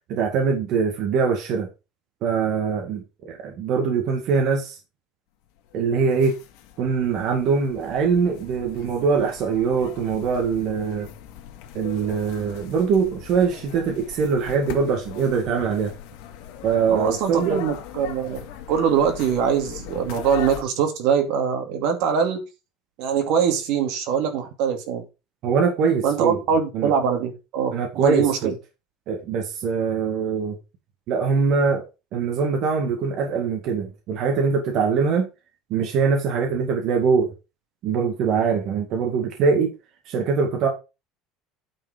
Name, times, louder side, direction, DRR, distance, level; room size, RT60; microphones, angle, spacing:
voice 1, 0.1-1.7 2.2-4.8 5.7-6.4 6.8-11.1 11.7-15.9 16.6-17.6 25.4-26.4 26.7-26.9 27.7-28.5 29.1-30.6 31.1-31.9 32.1-35.3 35.7-37.3 37.8-39.7 40.1-40.7, right 5 dB, 50° right, 2.0 m, -23 dB
sound 1, 5.6-20.6, left 10 dB, 70° left, 2.1 m, -40 dB
voice 2, 16.9-18.4 18.7-22.4 23.0-25.1 26.0-28.5, right 7 dB, 65° right, 2.5 m, -23 dB
9.4 x 5.4 x 5.1 m
cardioid pair, 165°, 0 cm